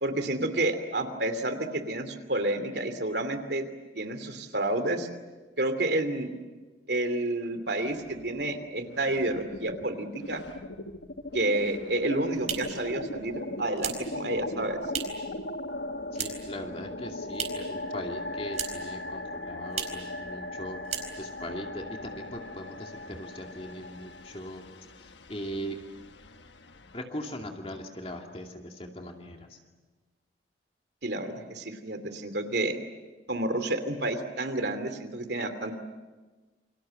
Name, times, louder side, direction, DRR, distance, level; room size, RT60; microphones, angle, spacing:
voice 1, 0.0-3.7 3.9-5.1 5.6-6.3 6.9-10.4 11.3-14.8 31.0-32.8 33.3-35.7, right 2 dB, 70° right, 8 dB, 2.7 m, -30 dB
sound 1, 7.8-8.6 8.9-27.0, left 1 dB, 90° left, 1.3 m, -39 dB
sound 2, 11.9-15.3 15.6-16.6 16.9-17.8 18.1-19.0 19.2-19.3 19.7-20.1 20.4-20.6 20.8-21.5, right 7 dB, 40° right, 4.3 m, -37 dB
voice 2, 16.1-20.8 21.2-24.6 25.0-25.8 26.9-29.6, equal, 35° left, 2 dB, 2.5 m, -40 dB
28.5 x 25.0 x 7.7 m, 1.3 s
head